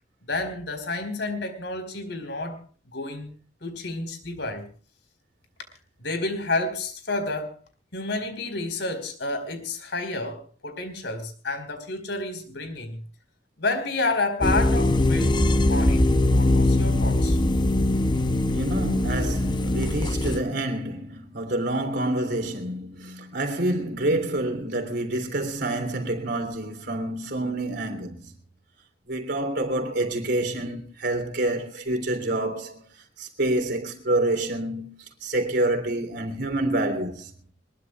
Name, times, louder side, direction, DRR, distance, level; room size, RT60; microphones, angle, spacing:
voice 1, 0.3-2.6 2.9-3.3 3.6-4.7 6.0-7.6 7.9-13.0 13.6-17.4, left 2 dB, 65° left, 4.7 m, -30 dB
sound 1, 14.4-20.4, left 1 dB, 25° left, 0.7 m, -21 dB
voice 2, 18.5-28.3 29.1-32.9 33.2-37.3, right 1 dB, 60° right, 3.4 m, -27 dB
22.5 x 21.5 x 2.4 m
head